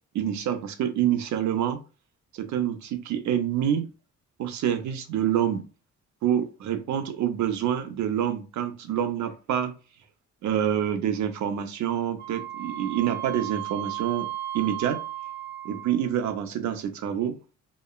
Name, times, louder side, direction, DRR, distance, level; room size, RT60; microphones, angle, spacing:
voice 1, 0.1-1.8 2.3-3.9 4.4-5.6 6.2-9.8 10.4-14.3 14.5-15.0 15.6-17.6, right 10 dB, 70° right, 0.6 m, -27 dB
Wind instrument woodwind instrument, 12.2-16.1, right 13 dB, 35° right, 0.7 m, -35 dB
3.0 x 2.1 x 2.3 m
cardioid pair, 90°, 30 cm